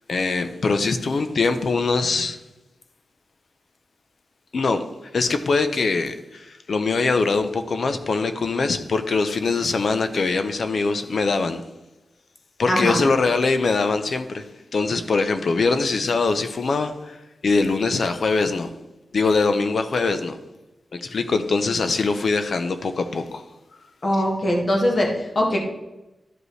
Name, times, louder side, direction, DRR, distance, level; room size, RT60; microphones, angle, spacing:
voice 1, 0.1-2.4 4.5-4.8 5.1-11.6 12.6-14.4 14.7-17.2 17.4-18.7 19.1-20.4 20.9-23.4 24.1-24.2, left 4 dB, 65° left, 8 dB, 0.6 m, -22 dB
voice 2, 12.7-13.0 24.0-25.1 25.4-25.6, left 1 dB, 45° left, -1 dB, 1.9 m, -21 dB
12.5 x 5.2 x 3.2 m, 1.0 s
wide cardioid pair, 110°, 0 cm